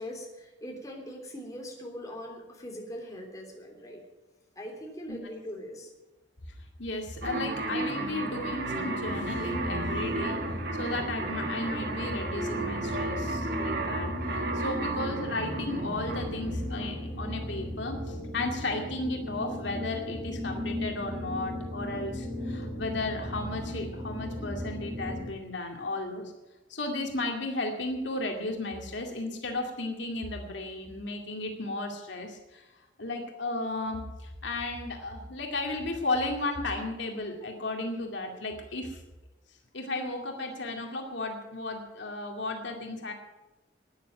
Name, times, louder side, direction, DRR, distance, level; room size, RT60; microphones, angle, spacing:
voice 1, 0.0-4.0 4.5-5.9, equal, 20° left, 0 dB, 3.2 m, -41 dB
voice 2, 6.8-10.4 10.8-26.3 26.7-32.7 33.0-39.0 39.7-43.1, left 2 dB, 70° left, 2 dB, 2.3 m, -34 dB
sound 1, 7.2-17.3, right 2 dB, 55° right, 2.0 m, -34 dB
sound 2, 9.0-25.3, left 1 dB, 15° right, 3.2 m, -36 dB
13.0 x 9.9 x 9.0 m, 1.1 s
head